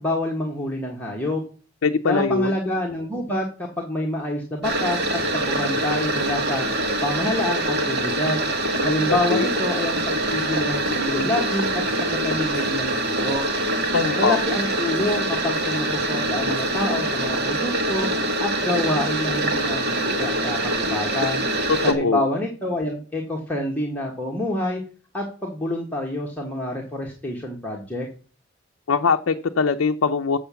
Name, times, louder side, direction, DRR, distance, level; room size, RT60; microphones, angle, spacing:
voice 1, 0.0-1.4 2.1-6.7 7.0-8.5 8.8-13.4 14.1-18.1 18.4-21.4 21.8-24.8 25.1-28.1, left 1 dB, 10° left, -2 dB, 1.5 m, -27 dB
voice 2, 1.8-2.5 9.1-9.5 13.9-14.4 21.9-22.2 28.9-30.4, left 5 dB, 70° left, 5 dB, 0.5 m, -21 dB
sound 1, 4.6-21.9, right 1 dB, 50° right, 1.6 m, -24 dB
7.4 x 6.9 x 6.9 m, 0.38 s
head